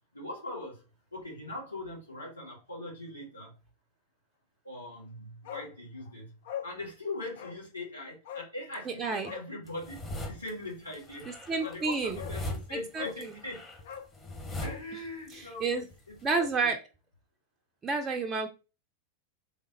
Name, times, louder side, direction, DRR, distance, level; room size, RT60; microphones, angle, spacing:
voice 1, 0.1-0.8 1.1-3.5 4.6-6.3 6.6-13.6 14.6-16.7, left 2 dB, 80° left, -2 dB, 1.7 m, -41 dB
Bark, 5.4-5.7 6.0-6.1 6.4-6.7 7.3-7.6 8.2-8.5 9.2-9.5 11.1-11.2 11.6-11.8 12.1-12.4 12.9-13.2 13.8-14.8 15.1-15.2, left 10 dB, 55° left, 0.5 m, -41 dB
voice 2, 8.9-9.3 11.3-12.2 12.7-13.3 15.3-15.9 16.2-16.8 17.8-18.5, right 4 dB, 20° right, 3 dB, 0.5 m, -31 dB
sound 1, 9.7-10.5 10.9-15.3 15.6-16.5, left 1 dB, 15° left, 1.2 m, -40 dB
3.6 x 3.5 x 3.0 m, 0.30 s
figure-of-eight pair, 90°, 0 cm